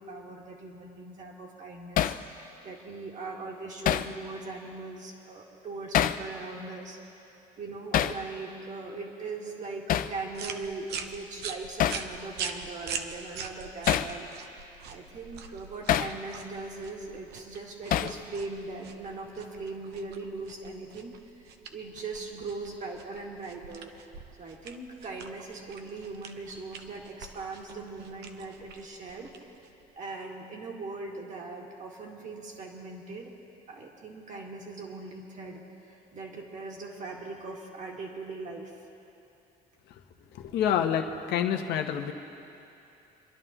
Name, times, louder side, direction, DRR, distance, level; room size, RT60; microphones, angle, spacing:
voice 1, 0.0-7.0 7.6-14.6 14.9-21.1 21.7-23.9 24.4-29.3 30.0-33.3 33.7-38.7, right 3 dB, 45° right, 0 dB, 2.1 m, -40 dB
Hammer, 2.0-2.2 3.9-4.1 5.9-6.3 7.9-8.2 9.9-10.2 11.8-12.1 13.9-14.1 15.9-16.2 17.9-18.2, left 11 dB, 55° left, 0.5 m, -25 dB
sound 1, 10.3-29.9, right 6 dB, 75° right, 0.9 m, -43 dB
voice 2, 40.3-42.1, left 9 dB, 80° left, 5 dB, 1.1 m, -27 dB
28.5 x 11.0 x 3.0 m, 2.9 s
cardioid pair, 110°, 17 cm